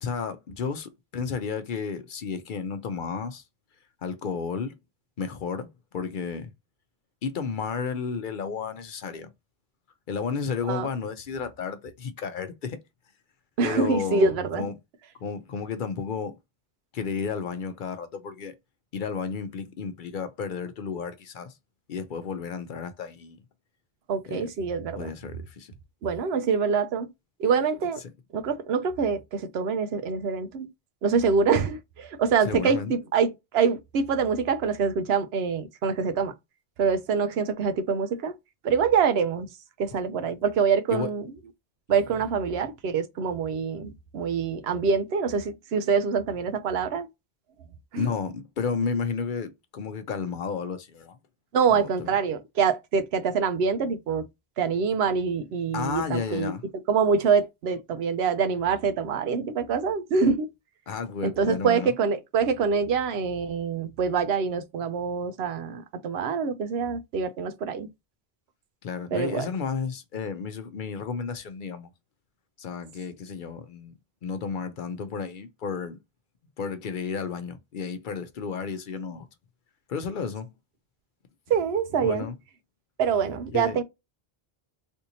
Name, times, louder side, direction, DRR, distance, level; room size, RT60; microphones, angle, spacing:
voice 1, 0.0-3.4 4.0-4.8 5.2-6.5 7.2-9.3 10.1-12.8 13.6-14.7 15.2-16.4 16.9-18.5 18.9-21.5 21.9-23.4 24.3-24.5 25.0-25.7 32.4-32.9 40.9-41.1 41.9-42.2 47.9-51.2 51.7-52.1 55.7-56.6 60.9-61.9 68.8-71.9 72.6-73.9 74.2-76.0 76.6-79.3 79.9-80.5 82.0-82.4 83.5-83.8, left 5 dB, 60° left, 0.7 m, -32 dB
voice 2, 13.6-14.7 24.1-25.1 26.0-27.1 27.4-28.0 28.3-30.7 31.0-36.3 36.8-38.3 38.6-39.5 39.8-41.3 41.9-47.1 47.9-48.0 51.5-54.3 54.6-56.5 56.9-60.5 61.2-67.9 69.1-69.5 81.5-82.3 83.0-83.8, right 5 dB, 85° right, 0.9 m, -25 dB
3.5 x 2.7 x 2.7 m
omnidirectional pair, 1.0 m